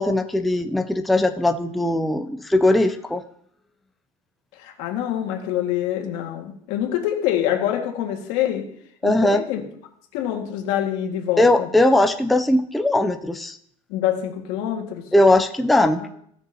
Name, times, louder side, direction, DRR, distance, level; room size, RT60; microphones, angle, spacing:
voice 1, 0.0-3.2 9.0-9.4 11.4-13.6 15.1-16.0, left 1 dB, ahead, 6 dB, 0.3 m, -19 dB
voice 2, 4.5-8.7 9.0-9.6 10.1-11.7 13.9-15.1 15.8-16.1, left 11 dB, 80° left, 2 dB, 1.8 m, -26 dB
17.5 x 6.6 x 2.8 m, 0.66 s
cardioid pair, 165°, 12 cm